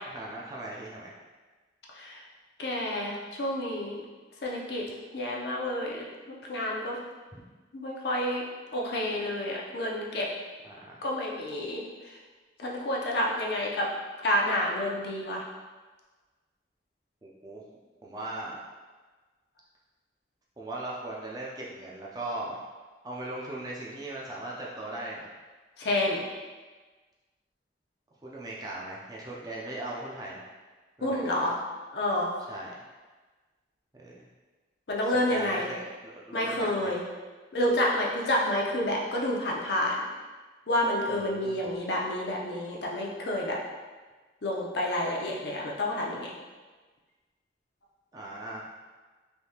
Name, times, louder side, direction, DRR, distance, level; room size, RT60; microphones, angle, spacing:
voice 1, 0.1-1.1 7.3-7.4 10.6-11.0 17.2-17.6 18.0-18.6 20.6-22.6 23.0-25.3 28.2-30.5 31.0-31.4 32.5-32.8 33.9-34.3 35.3-36.9 41.1-41.6 48.1-48.7, right 2 dB, 20° right, -4 dB, 0.4 m, -39 dB
voice 2, 1.9-2.2 2.6-4.0 4.4-4.8 5.1-7.0 7.7-8.4 8.7-10.3 11.0-11.8 12.6-13.9 14.2-15.4 25.8-26.2 31.0-31.6 31.9-32.3 34.9-35.7 36.3-37.0 37.5-40.0 40.7-43.6 44.4-46.3, left 1 dB, 65° left, -2 dB, 0.6 m, -29 dB
3.4 x 2.7 x 2.8 m, 1.3 s
head